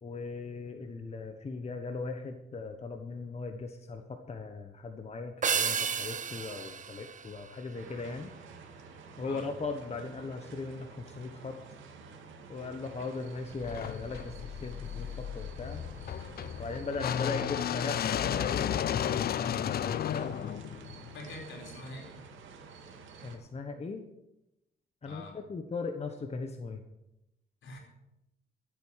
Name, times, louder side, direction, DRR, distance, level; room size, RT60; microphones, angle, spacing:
voice 1, 0.0-8.3 9.2-11.6 12.5-15.8 16.6-20.6 23.2-24.0 25.0-25.2 25.5-26.8, left 3 dB, 30° left, 5 dB, 1.3 m, -38 dB
sound 1, 5.4-8.1, right 7 dB, 40° right, 0.9 m, -33 dB
sound 2, 7.7-23.4, right 5 dB, 75° right, 2.3 m, -50 dB
sound 3, 13.6-21.7, left 10 dB, 50° left, 0.5 m, -33 dB
voice 2, 21.1-22.1 25.0-25.4 27.6-27.8, left 2 dB, 70° left, 1 dB, 4.3 m, -45 dB
13.0 x 8.7 x 6.5 m, 0.90 s
cardioid pair, 90°, 20 cm